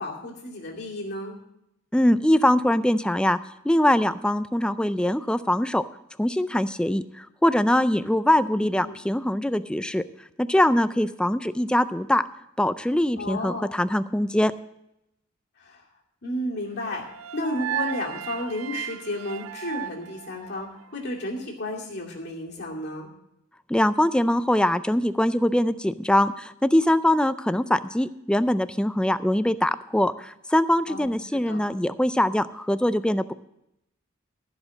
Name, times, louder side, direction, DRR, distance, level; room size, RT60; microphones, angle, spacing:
voice 1, 0.0-1.4 8.6-9.0 13.2-13.7 15.6-15.8 16.2-17.0 17.3-23.1 30.9-31.6, left 1 dB, 50° left, -1 dB, 2.5 m, -33 dB
voice 2, 1.9-3.4 3.6-5.8 6.2-10.0 10.4-12.2 12.6-14.5 23.7-33.3, left 1 dB, 5° left, 13 dB, 0.3 m, -22 dB
sound 1, 16.8-21.0, right 10 dB, 75° right, 0.4 m, -35 dB
15.0 x 5.1 x 7.5 m, 0.83 s
head